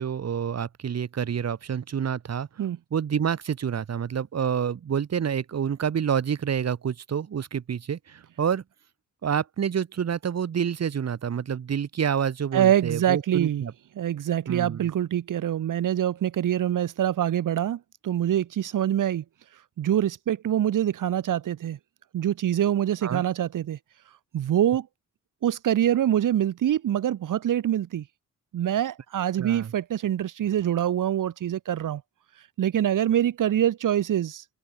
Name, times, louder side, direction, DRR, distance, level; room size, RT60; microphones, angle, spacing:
voice 1, 0.0-2.5 2.9-8.6 9.2-13.7 14.5-14.9 23.0-23.2 29.4-29.7, right 8 dB, 55° right, 4.6 m, -28 dB
voice 2, 12.5-13.7 14.0-21.8 22.1-24.9 25.4-28.1 28.5-32.0 32.3-34.5, right 11 dB, 85° right, 3.5 m, -25 dB
wide cardioid pair, 135°, 31 cm